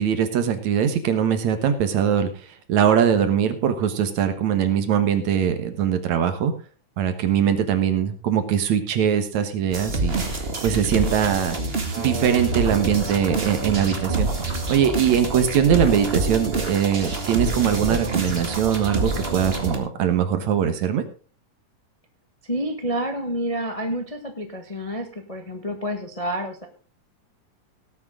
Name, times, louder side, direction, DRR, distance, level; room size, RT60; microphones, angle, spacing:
voice 1, 0.0-6.5 7.0-11.6 11.9-21.0, right 8 dB, 65° right, 9 dB, 2.6 m, -22 dB
sound 1, 9.7-19.8, right 2 dB, 25° right, 1.4 m, -27 dB
voice 2, 10.7-11.1 22.4-26.7, equal, 70° left, 4 dB, 0.3 m, -29 dB
18.0 x 8.7 x 3.8 m, 0.37 s
omnidirectional pair, 3.7 m